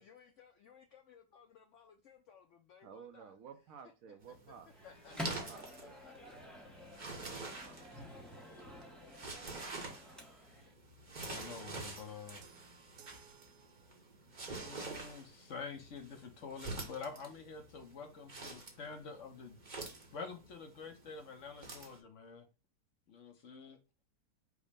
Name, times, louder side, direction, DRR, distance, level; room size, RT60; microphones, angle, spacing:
voice 1, 0.0-3.4 3.8-6.4 18.5-18.6, left 7 dB, 80° left, 0.6 m, -60 dB
voice 2, 2.8-4.7 5.3-6.0 7.2-8.0, right 7 dB, 65° right, 0.9 m, -54 dB
sound 1, 4.2-22.0, right 3 dB, 35° right, 0.8 m, -48 dB
Microwave oven, 4.7-10.7, left 1 dB, ahead, 0.5 m, -49 dB
voice 3, 11.2-12.4 14.6-19.6 20.1-22.4 23.1-23.8, left 5 dB, 55° left, 1.0 m, -47 dB
sound 2, 11.3-14.2, right 8 dB, 80° right, 1.2 m, -61 dB
5.1 x 2.1 x 4.9 m
omnidirectional pair, 1.8 m